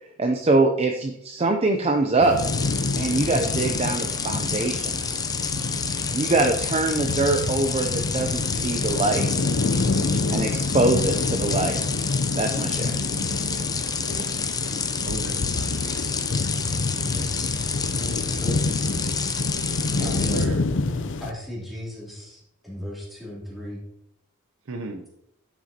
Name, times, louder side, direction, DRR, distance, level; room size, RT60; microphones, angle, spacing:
voice 1, 0.2-2.4 2.9-5.2 6.1-9.3 10.3-11.8 12.4-12.9, right 2 dB, 30° right, 4 dB, 0.5 m, -23 dB
sound 1, 2.2-21.3, left 3 dB, 60° left, 0.6 m, -28 dB
sound 2, 2.4-20.5, left 5 dB, 20° left, 0.6 m, -29 dB
voice 2, 5.9-6.2 9.9-10.6 14.0-14.2 15.0-15.7 17.1-17.3 19.9-20.7 24.7-25.1, right 2 dB, 65° right, 7 dB, 0.7 m, -37 dB
voice 3, 17.0-17.5 17.9-18.7 20.0-20.6 21.2-23.8, left 1 dB, ahead, -6 dB, 2.8 m, -37 dB
11.0 x 6.2 x 2.9 m, 0.81 s
head